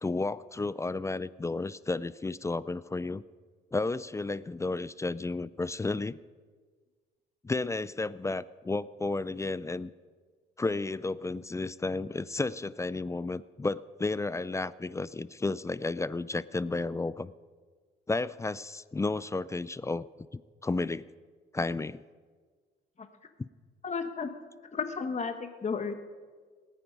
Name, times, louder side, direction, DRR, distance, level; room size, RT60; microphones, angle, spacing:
voice 1, 0.0-3.2 3.7-6.2 7.4-9.9 10.6-17.3 18.1-20.1 20.3-21.1 21.5-22.0 23.4-23.5, left 3 dB, 15° left, 18 dB, 0.3 m, -32 dB
voice 2, 23.8-24.3 24.7-25.9, left 5 dB, 35° left, 7 dB, 1.2 m, -33 dB
19.5 x 9.3 x 5.3 m, 1.5 s
cardioid pair, 90°, 20 cm